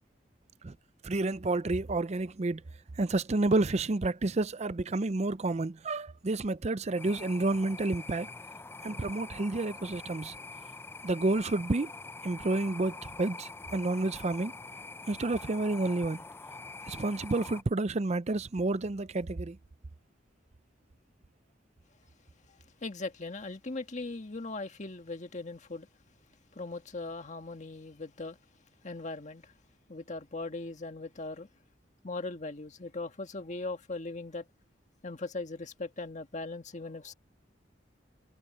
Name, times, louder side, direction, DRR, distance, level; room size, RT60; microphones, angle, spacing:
voice 1, 1.0-2.6 3.0-8.3 8.8-10.3 11.0-11.9 12.2-14.5 15.1-16.2 16.9-19.6, right 2 dB, 40° right, 0.6 m, -30 dB
sound 1, 7.0-17.6, left 3 dB, 15° left, 0.4 m, -45 dB
voice 2, 22.8-25.9 26.5-28.4 28.8-29.5 29.9-31.5 32.0-34.5 35.0-37.1, left 3 dB, 40° left, 1.6 m, -39 dB
head